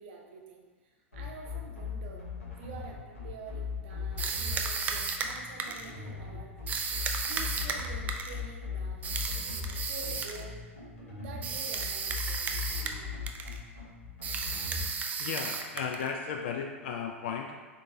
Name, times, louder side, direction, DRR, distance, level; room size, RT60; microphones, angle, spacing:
voice 1, 0.0-2.2 2.6-6.5 7.2-9.1 9.8-10.6 11.2-12.5, right 4 dB, 55° right, 1 dB, 0.7 m, -47 dB
sound 1, 1.1-14.8, left 5 dB, 85° left, 1.1 m, -38 dB
sound 2, 4.2-5.9 6.7-8.4 9.0-10.4 11.4-13.0 13.3-13.6 14.2-16.1, right 5 dB, 20° right, 0.3 m, -34 dB
voice 2, 15.2-17.7, left 6 dB, 55° left, 2 dB, 0.3 m, -35 dB
3.7 x 3.7 x 2.7 m, 1.4 s
figure-of-eight pair, 95°, 7 cm